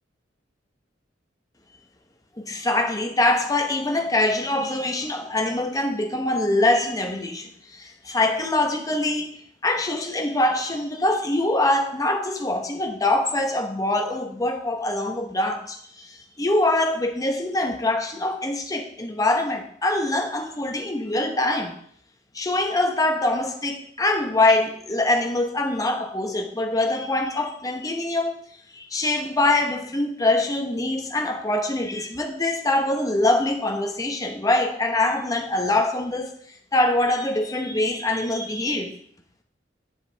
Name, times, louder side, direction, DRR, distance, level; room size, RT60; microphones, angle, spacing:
voice 1, 2.4-9.3 9.6-16.1 16.4-21.7 22.3-28.4 28.7-36.4 36.7-38.9, left 2 dB, 20° left, 4 dB, 0.9 m, -24 dB
7.9 x 7.5 x 3.4 m, 0.63 s
head